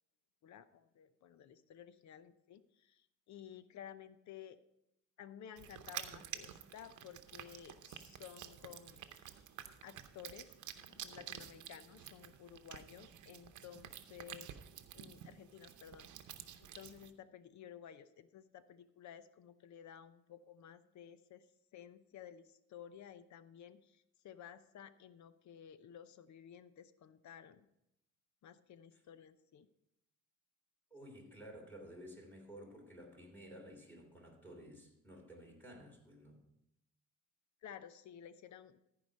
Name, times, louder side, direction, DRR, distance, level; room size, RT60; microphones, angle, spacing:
voice 1, 0.4-4.6 5.2-14.6 14.9-16.1 16.6-27.7 28.4-29.7 37.6-38.8, left 9 dB, 70° left, 13 dB, 0.7 m, -54 dB
sound 1, 5.6-17.1, right 10 dB, 75° right, 0.8 m, -50 dB
voice 2, 30.9-36.4, equal, 5° left, 0 dB, 3.1 m, -53 dB
14.0 x 4.9 x 5.3 m, 0.85 s
cardioid pair, 90°, 30 cm